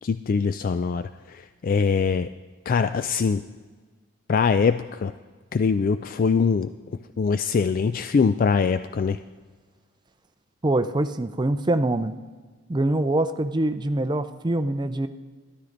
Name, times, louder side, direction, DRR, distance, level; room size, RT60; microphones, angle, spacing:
voice 1, 0.0-2.3 2.7-3.4 4.3-5.1 5.5-6.7 7.2-9.2, left 5 dB, 45° left, 11 dB, 0.3 m, -23 dB
voice 2, 10.6-12.1 12.7-15.1, right 1 dB, 20° right, 9 dB, 0.5 m, -24 dB
13.0 x 12.0 x 3.9 m, 1.4 s
head